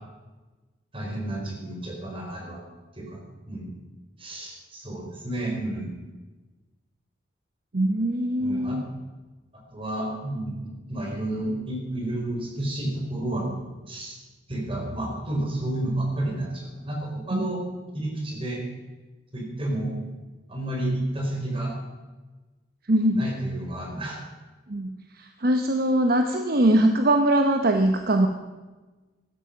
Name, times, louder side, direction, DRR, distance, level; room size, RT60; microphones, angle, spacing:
voice 1, 0.9-2.6 3.0-3.2 3.5-3.7 4.2-5.9 8.4-8.8 9.5-13.6 13.9-14.2 14.5-17.6 17.9-18.6 19.3-19.9 20.5-21.7 23.1-24.2, right 1 dB, 30° right, 0 dB, 4.5 m, -31 dB
voice 2, 7.7-8.8 17.3-17.5 22.9-23.2 24.7-28.3, right 1 dB, 55° right, 6 dB, 1.0 m, -22 dB
15.5 x 12.5 x 6.0 m, 1.2 s
head